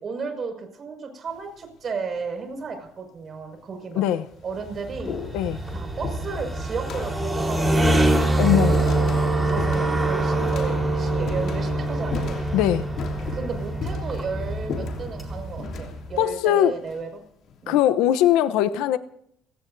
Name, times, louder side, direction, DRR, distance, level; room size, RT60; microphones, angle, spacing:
voice 1, 0.0-4.1 4.4-5.2 5.7-8.6 9.4-12.4 13.1-17.2 17.6-17.8, right 5 dB, 40° right, 4 dB, 5.9 m, -34 dB
sound 1, 1.3-1.7 2.6-2.7 3.6-3.7 4.1-17.6, left 6 dB, 60° left, 3.1 m, -38 dB
voice 2, 3.9-4.2 5.3-5.6 8.4-8.8 12.5-12.9 16.2-16.7 17.7-19.0, left 11 dB, 85° left, 12 dB, 0.8 m, -20 dB
sound 2, 4.6-16.2, right 1 dB, 15° right, 4.2 m, -25 dB
29.5 x 17.0 x 2.7 m, 0.68 s
cardioid pair, 115°, 0 cm